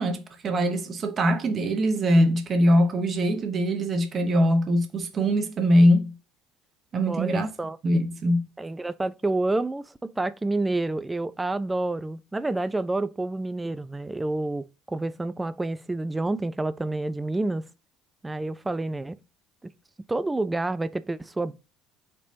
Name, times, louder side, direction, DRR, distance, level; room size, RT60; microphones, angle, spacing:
voice 1, 0.0-6.1 6.9-7.5 7.8-8.4, equal, 35° right, 0.8 m, -22 dB
voice 2, 7.1-7.8 8.6-17.7 18.2-19.2 19.6-19.7 20.1-21.5, right 2 dB, 15° right, 0.3 m, -29 dB
4.4 x 2.9 x 2.5 m
figure-of-eight pair, 60°, 0 cm